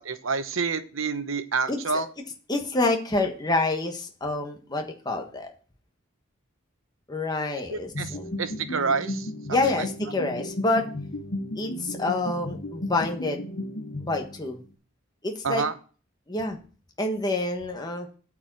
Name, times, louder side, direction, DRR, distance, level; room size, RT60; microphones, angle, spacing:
voice 1, 0.0-2.1 7.7-9.3 9.7-9.9 15.4-15.7, right 4 dB, 70° right, 10 dB, 0.9 m, -28 dB
voice 2, 2.5-5.5 7.1-8.4 9.5-10.9 11.5-13.4 14.0-14.6 15.2-15.6 16.3-16.6 17.0-18.1, left 2 dB, 20° left, 3 dB, 1.3 m, -27 dB
sound 1, 7.9-14.6, left 1 dB, 45° left, 1.1 m, -34 dB
8.7 x 4.8 x 7.6 m, 0.39 s
head